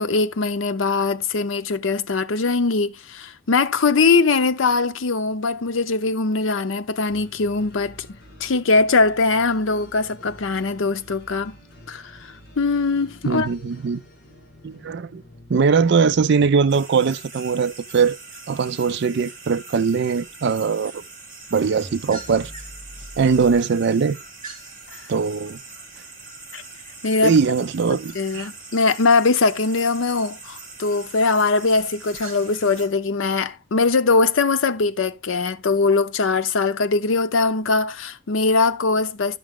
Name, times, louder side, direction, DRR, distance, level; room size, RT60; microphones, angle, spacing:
voice 1, 0.0-8.1 8.4-11.6 11.9-12.1 12.6-13.5 26.5-26.6 27.0-27.4 28.1-39.4, left 3 dB, 80° left, 0.6 m, -21 dB
sound 1, 7.1-16.9, equal, 60° left, 2.6 m, -48 dB
voice 2, 13.2-14.0 14.6-15.2 15.5-18.2 18.5-21.0 21.5-22.5 23.2-24.2 25.1-25.6 27.2-28.5, right 5 dB, 60° right, 0.4 m, -21 dB
sound 2, 16.7-32.9, right 3 dB, 45° right, 2.2 m, -41 dB
sound 3, 21.8-23.6, equal, ahead, 1.5 m, -42 dB
11.5 x 6.1 x 3.6 m
head